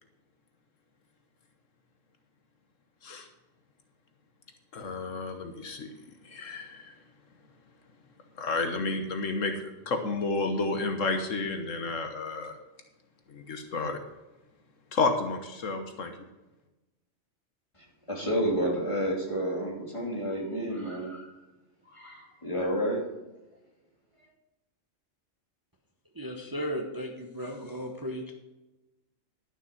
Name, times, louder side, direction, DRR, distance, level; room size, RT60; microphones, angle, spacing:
voice 1, 4.7-5.9 6.2-6.9 8.4-12.5 13.3-14.0 14.9-16.1, left 3 dB, 75° left, 5 dB, 1.5 m, -31 dB
voice 2, 18.1-21.3 21.9-23.0, equal, 25° left, -2 dB, 2.8 m, -30 dB
voice 3, 26.1-28.3, equal, 20° right, 2 dB, 1.0 m, -35 dB
12.0 x 6.6 x 6.0 m, 1.0 s
omnidirectional pair, 1.3 m